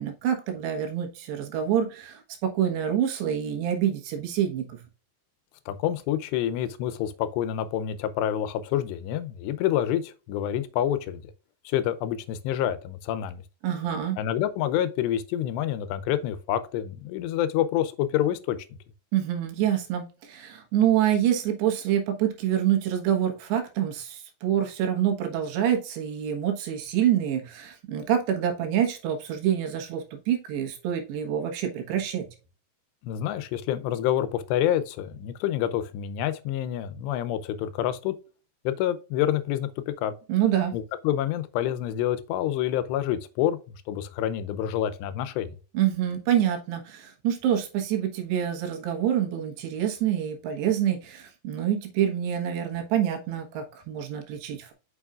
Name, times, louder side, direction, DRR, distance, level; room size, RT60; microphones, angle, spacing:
voice 1, 0.0-4.8 13.6-14.2 19.1-32.3 40.3-40.8 45.8-54.7, right 10 dB, 85° right, 3.5 m, -26 dB
voice 2, 5.7-11.2 11.7-13.4 14.2-18.7 33.0-38.1 38.7-40.1 40.7-45.5, left 11 dB, 90° left, 2.9 m, -27 dB
7.1 x 6.2 x 2.4 m
omnidirectional pair, 4.8 m